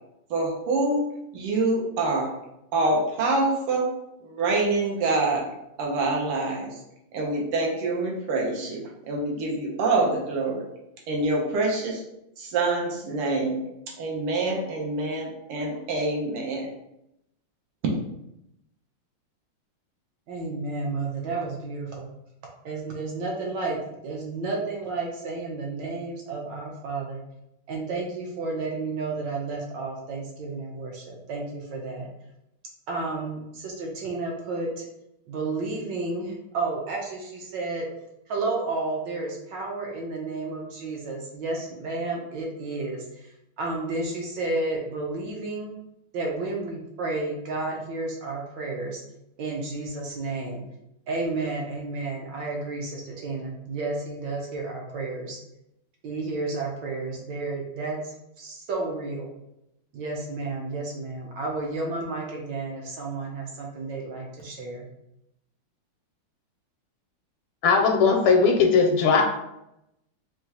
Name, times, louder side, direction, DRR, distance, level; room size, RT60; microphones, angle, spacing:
voice 1, 0.3-1.0 1.3-2.3 2.7-3.9 4.2-5.4 5.8-6.8 7.1-8.8 9.1-10.6 11.1-12.0 12.4-13.6 14.0-16.7, right 2 dB, 85° right, -1 dB, 1.8 m, -26 dB
voice 2, 20.3-22.1 22.6-27.2 27.7-32.1 32.9-34.9 35.3-37.9 38.3-43.3 43.6-45.7 46.1-49.0 49.4-50.6 51.1-55.4 56.0-59.3 59.9-64.9, right 3 dB, 70° right, -1 dB, 1.2 m, -31 dB
voice 3, 67.6-69.2, left 5 dB, 80° left, 2 dB, 1.4 m, -19 dB
5.0 x 2.3 x 2.8 m, 0.84 s
omnidirectional pair, 2.4 m